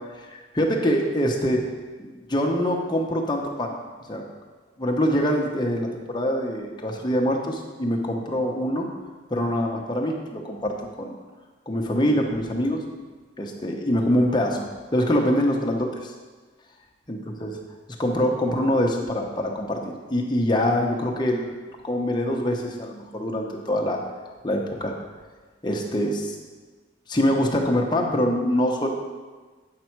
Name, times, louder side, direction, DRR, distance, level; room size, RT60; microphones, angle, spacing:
voice 1, 0.3-1.6 2.0-3.7 4.1-4.2 4.8-8.9 9.3-11.2 11.7-12.8 13.4-16.1 17.1-17.5 18.0-21.6 21.8-24.0 24.4-24.9 25.6-26.3 27.1-28.9, equal, 25° left, 0 dB, 0.8 m, -24 dB
8.4 x 5.3 x 4.5 m, 1.4 s
head